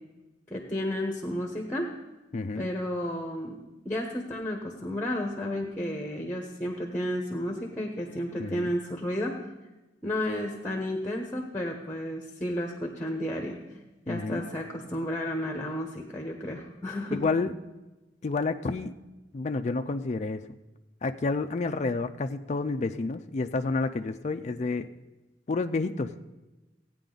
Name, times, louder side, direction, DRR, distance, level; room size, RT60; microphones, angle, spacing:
voice 1, 0.5-1.9 2.6-3.6 3.8-9.3 10.0-13.6 14.1-17.3, left 1 dB, 10° left, 2 dB, 1.0 m, -32 dB
voice 2, 2.3-2.7 8.4-8.7 14.1-14.5 17.1-17.5 18.2-18.9 19.3-20.4 21.0-24.9 25.5-26.1, left 3 dB, 40° left, 7 dB, 0.4 m, -29 dB
16.0 x 9.1 x 3.9 m, 1.1 s
head